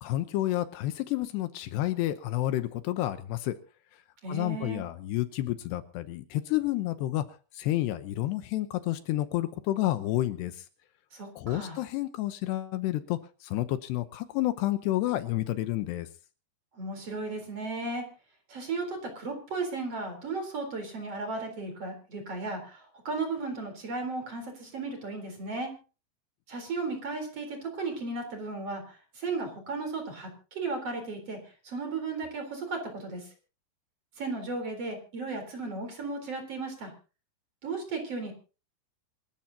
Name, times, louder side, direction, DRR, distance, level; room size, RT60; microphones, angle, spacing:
voice 1, 0.0-3.6 4.3-7.2 7.5-10.7 11.4-16.1, left 15 dB, 80° left, 11 dB, 2.9 m, -30 dB
voice 2, 4.2-4.8 11.1-11.8 16.7-18.0 18.5-25.7 26.5-33.3 34.2-36.9 37.6-38.3, right 3 dB, 35° right, 5 dB, 4.5 m, -35 dB
26.5 x 13.5 x 2.8 m, 0.34 s
omnidirectional pair, 5.0 m